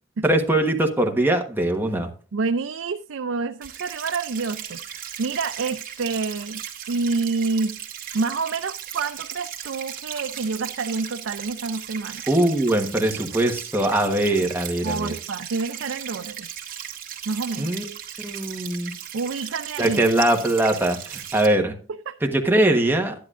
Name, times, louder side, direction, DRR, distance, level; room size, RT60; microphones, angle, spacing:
voice 1, 0.2-2.1 12.3-15.1 17.6-17.9 18.2-18.9 19.8-21.7 22.2-23.1, right 1 dB, 10° right, 1.2 m, -21 dB
voice 2, 2.3-7.8 8.1-12.2 14.8-16.5 17.3-17.7 19.1-20.0 22.1-22.2, right 4 dB, 70° right, 0.5 m, -28 dB
sound 1, 3.6-21.5, right 9 dB, 45° right, 1.9 m, -36 dB
11.5 x 10.5 x 2.5 m
head